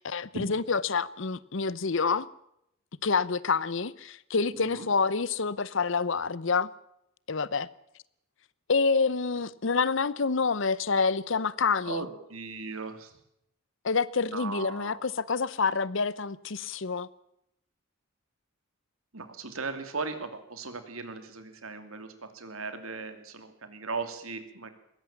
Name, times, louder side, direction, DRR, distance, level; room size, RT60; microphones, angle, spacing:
voice 1, 0.0-2.3 3.0-6.7 7.3-7.7 8.7-12.1 13.8-17.1, left 4 dB, 60° left, 0.8 m, -27 dB
voice 2, 4.5-4.9 11.8-13.1 14.3-15.1 19.1-24.7, right 4 dB, 80° right, 2.7 m, -38 dB
21.0 x 17.0 x 7.2 m
head